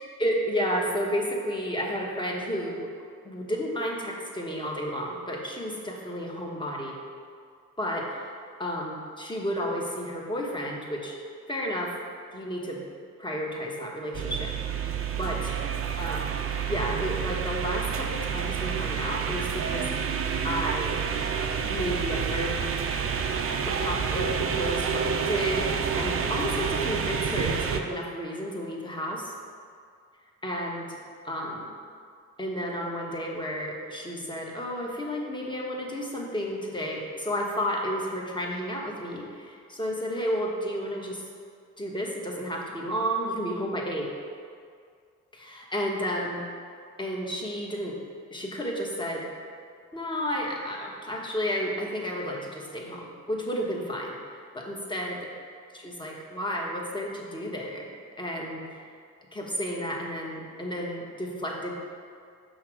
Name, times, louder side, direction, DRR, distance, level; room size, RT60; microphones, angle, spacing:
voice 1, 0.2-2.9 3.2-7.0 7.8-8.3 8.6-11.1 11.5-11.9 12.3-12.8 13.2-14.5 15.1-15.5 16.0-16.2 16.7-19.9 20.4-21.0 21.7-22.6 23.6-29.3 30.4-31.0 31.2-31.7 32.4-41.2 41.8-44.1 45.3-46.4 47.0-47.9 48.3-49.3 49.9-54.1 54.5-55.2 55.7-57.9 58.2-58.6 59.3-61.7, equal, 15° left, -1 dB, 1.2 m, -32 dB
sound 1, 14.1-27.8, right 6 dB, 45° right, 0.6 m, -29 dB
5.7 x 3.9 x 6.1 m, 2.2 s
cardioid pair, 90°, 30 cm